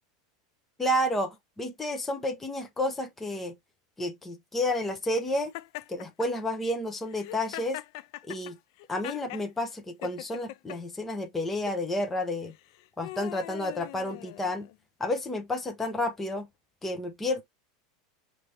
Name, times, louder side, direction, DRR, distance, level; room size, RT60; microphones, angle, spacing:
voice 1, 0.8-3.5 4.0-5.5 5.9-7.8 8.3-8.6 8.9-12.5 13.0-14.7 15.0-16.5 16.8-17.4, left 1 dB, 10° left, 0.6 m, -30 dB
Laughter, 5.5-6.3 7.1-9.5 10.0-10.8 11.5-11.8 12.5-14.8, left 16 dB, 55° left, 0.3 m, -41 dB
4.5 x 2.6 x 3.2 m
supercardioid pair, 170°, 3 cm